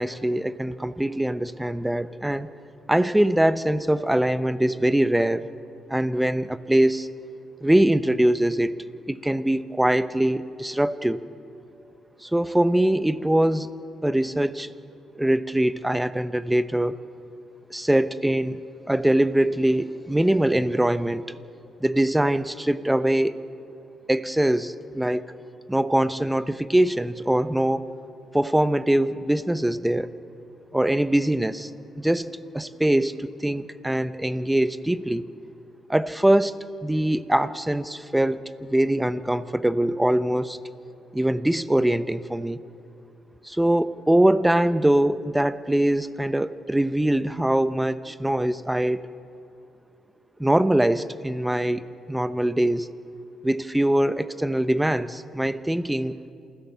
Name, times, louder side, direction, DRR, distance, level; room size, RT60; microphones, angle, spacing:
voice 1, 0.0-2.5 2.9-5.5 5.9-7.1 7.6-8.7 9.1-11.2 12.2-13.7 14.0-14.7 15.1-17.0 17.7-18.6 18.9-21.2 21.8-23.4 24.1-25.2 25.7-27.9 28.3-30.1 30.7-31.7 32.0-32.3 32.5-35.3 35.9-36.6 36.8-40.6 41.1-42.6 43.4-49.0 50.4-52.9 53.4-56.2, right 1 dB, 5° right, 13 dB, 0.8 m, -22 dB
27.5 x 16.0 x 6.9 m, 2.6 s
cardioid pair, 90°, 0 cm